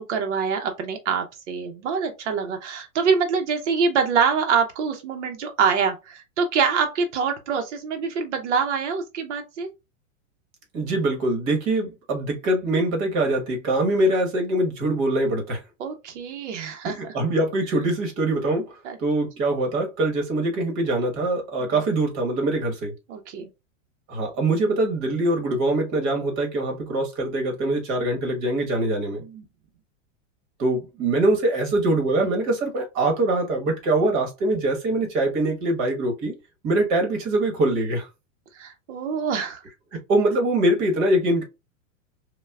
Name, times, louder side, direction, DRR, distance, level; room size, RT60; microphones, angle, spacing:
voice 1, 0.0-9.7 15.8-17.1 18.8-19.0 21.6-21.7 23.1-23.5 29.2-29.4 38.5-39.6, right 6 dB, 60° right, 0.8 m, -25 dB
voice 2, 10.7-15.6 16.8-18.7 19.0-22.9 24.1-29.2 30.6-36.3 36.6-38.1 40.1-41.4, right 1 dB, 35° right, 1.2 m, -23 dB
5.4 x 2.3 x 2.3 m
supercardioid pair, 155°, 39 cm